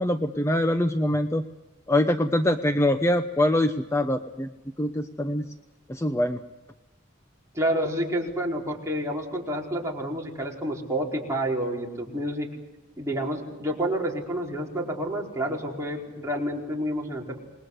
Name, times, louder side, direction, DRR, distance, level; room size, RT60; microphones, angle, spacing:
voice 1, 0.0-1.4 1.9-4.5 4.8-5.5 5.9-6.4, left 1 dB, 15° left, 8 dB, 0.9 m, -24 dB
voice 2, 7.5-12.5 13.0-17.4, right 1 dB, 15° right, -2 dB, 4.7 m, -29 dB
27.5 x 21.5 x 8.1 m, 1.0 s
head